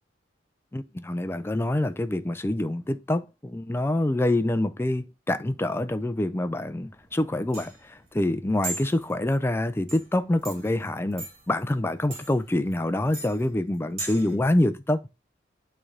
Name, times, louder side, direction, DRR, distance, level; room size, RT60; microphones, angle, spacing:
voice 1, 0.7-15.1, left 1 dB, 15° left, 0.4 m, -26 dB
sound 1, 7.0-14.3, right 3 dB, 35° right, 2.5 m, -40 dB
8.6 x 3.3 x 3.6 m
head